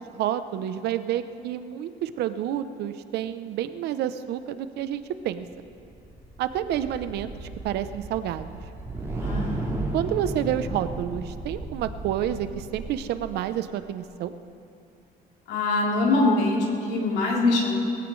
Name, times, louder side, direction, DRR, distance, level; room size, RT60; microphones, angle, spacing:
voice 1, 0.0-5.4 6.4-8.6 9.9-14.3, right 11 dB, 80° right, 11 dB, 0.7 m, -29 dB
sound 1, 5.5-13.7, right 2 dB, 15° right, 4.6 m, -34 dB
voice 2, 9.2-9.8 15.5-17.8, left 2 dB, 90° left, -3 dB, 3.4 m, -23 dB
22.0 x 15.0 x 3.2 m, 2.5 s
cardioid pair, 110°, 17 cm